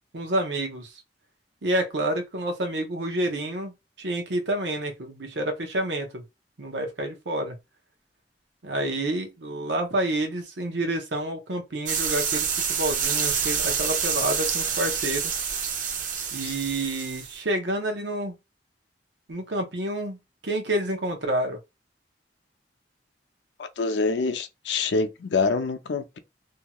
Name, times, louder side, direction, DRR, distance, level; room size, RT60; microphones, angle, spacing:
voice 1, 0.1-0.9 1.6-6.2 6.6-7.5 8.6-15.3 16.3-18.3 19.3-20.2 20.4-21.6, right 1 dB, 85° right, 0.8 m, -28 dB
sound 1, 11.9-17.4, right 7 dB, 50° right, 0.6 m, -27 dB
voice 2, 23.6-26.2, left 4 dB, 85° left, 0.5 m, -26 dB
2.7 x 2.3 x 2.8 m
head